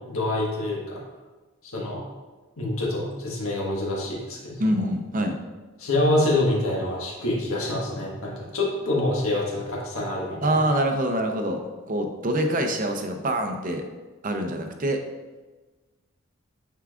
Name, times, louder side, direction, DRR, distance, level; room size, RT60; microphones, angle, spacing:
voice 1, 0.1-1.0 1.6-2.0 2.6-4.6 5.8-10.6, left 2 dB, 85° left, -2 dB, 1.6 m, -26 dB
voice 2, 4.6-5.4 10.4-11.6 11.9-13.8 14.2-15.0, right 1 dB, 40° right, 5 dB, 0.7 m, -25 dB
9.4 x 4.6 x 2.5 m, 1.3 s
head